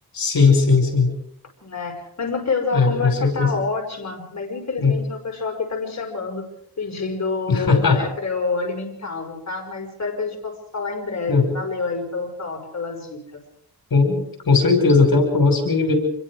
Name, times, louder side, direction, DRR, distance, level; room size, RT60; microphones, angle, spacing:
voice 1, 0.1-1.1 2.7-3.5 4.8-5.0 7.5-8.0 11.3-11.5 13.9-15.9, left 4 dB, 65° left, 5 dB, 5.6 m, -18 dB
voice 2, 1.6-6.5 6.8-13.4 14.5-14.7, left 4 dB, 45° left, 3 dB, 5.8 m, -28 dB
27.0 x 21.5 x 5.0 m, 0.71 s
cardioid pair, 60°, 38 cm